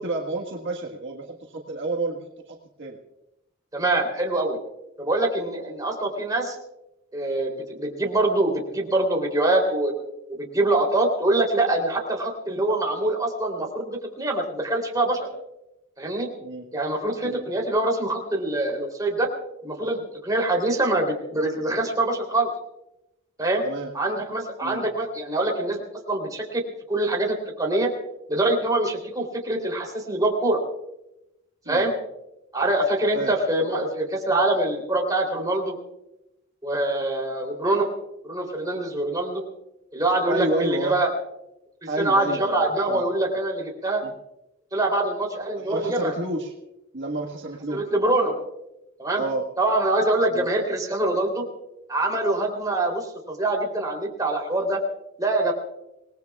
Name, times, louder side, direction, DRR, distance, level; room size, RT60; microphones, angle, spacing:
voice 1, 0.0-3.0 16.4-16.6 17.2-17.5 23.6-23.9 24.6-24.8 31.6-31.8 33.1-33.3 40.2-41.0 41.9-43.0 44.0-44.1 45.6-46.5 46.9-47.8 49.1-49.4 50.3-50.5, right 2 dB, 60° right, -1 dB, 1.5 m, -30 dB
voice 2, 3.7-4.6 5.0-6.5 7.1-9.9 10.4-15.3 16.0-16.3 16.7-19.3 19.6-22.5 23.4-23.6 23.9-26.6 26.9-27.9 28.3-30.6 31.7-31.9 32.5-35.7 36.6-37.9 38.2-39.4 39.9-41.1 42.0-44.0 44.7-46.1 47.7-48.3 49.0-49.2 49.6-51.4 51.9-54.8 55.2-55.5, right 2 dB, 15° right, 0 dB, 3.2 m, -24 dB
27.0 x 19.0 x 2.3 m, 0.91 s
head